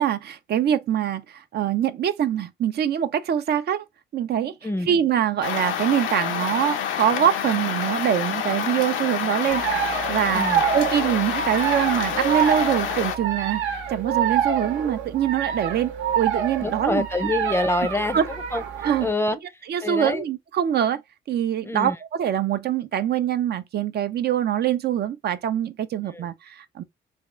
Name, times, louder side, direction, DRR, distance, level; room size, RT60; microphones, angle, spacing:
voice 1, 0.0-3.8 4.1-4.5 4.9-10.4 10.7-17.1 18.1-18.2 18.8-19.1 19.7-21.0 21.3-26.8, right 10 dB, 55° right, 0.5 m, -24 dB
sound 1, 5.4-13.2, left 8 dB, 80° left, 0.6 m, -28 dB
sound 2, 9.5-19.1, right 9 dB, 80° right, 0.9 m, -27 dB
voice 2, 16.6-18.2 18.5-19.4 19.8-20.2 21.6-22.0 26.1-26.2, left 2 dB, 10° left, 0.5 m, -26 dB
3.5 x 2.3 x 3.0 m
cardioid pair, 90°, 20 cm